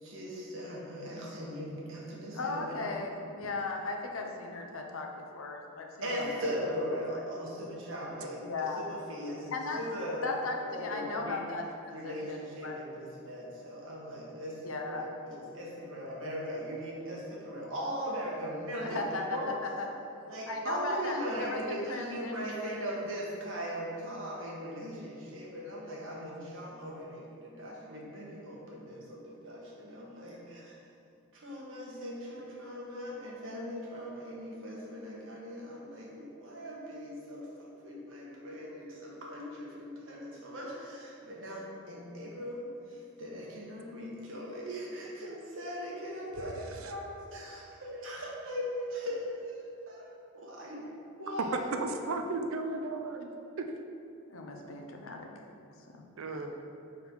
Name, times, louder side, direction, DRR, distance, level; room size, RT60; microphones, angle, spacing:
voice 1, 0.0-2.8 6.0-10.2 10.6-11.4 11.9-19.5 20.2-30.7 31.3-50.8 51.2-51.7, equal, 70° right, -4 dB, 1.3 m, -39 dB
voice 2, 2.3-6.8 7.1-7.2 8.4-8.9 9.5-9.8 10.2-11.6 12.0-12.8 14.6-15.1 18.8-19.9 20.5-22.8 54.3-55.3 55.9-56.0 56.3-56.4, left 3 dB, 80° left, 2 dB, 0.7 m, -37 dB
voice 3, 51.8-53.3 53.6-53.7 56.2-56.5, right 2 dB, 85° right, 5 dB, 0.5 m, -35 dB
4.5 x 4.1 x 5.3 m, 2.7 s
head